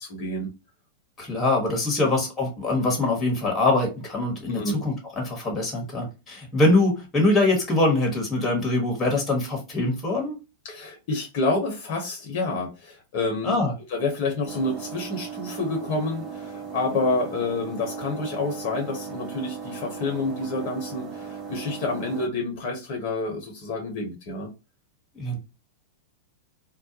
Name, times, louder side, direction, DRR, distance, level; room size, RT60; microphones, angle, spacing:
voice 1, 0.1-0.5 4.5-4.8 10.6-13.6 13.9-24.5, left 3 dB, 55° left, 0.9 m, -28 dB
voice 2, 1.2-10.4 13.4-13.7 25.1-25.4, left 2 dB, 25° left, 1.2 m, -23 dB
sound 1, 14.5-22.3, right 6 dB, 35° right, 0.6 m, -37 dB
2.3 x 2.1 x 2.8 m
hypercardioid pair, 100°, 0 cm